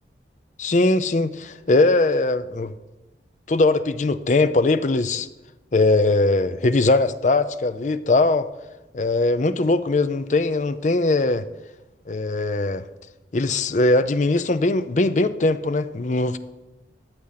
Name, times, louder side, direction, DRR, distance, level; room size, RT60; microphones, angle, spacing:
voice 1, 0.6-2.7 3.5-5.3 5.7-8.5 8.9-11.5 12.1-12.8 13.3-16.4, left 2 dB, 40° left, 13 dB, 0.5 m, -20 dB
12.0 x 7.7 x 5.7 m, 1.1 s
head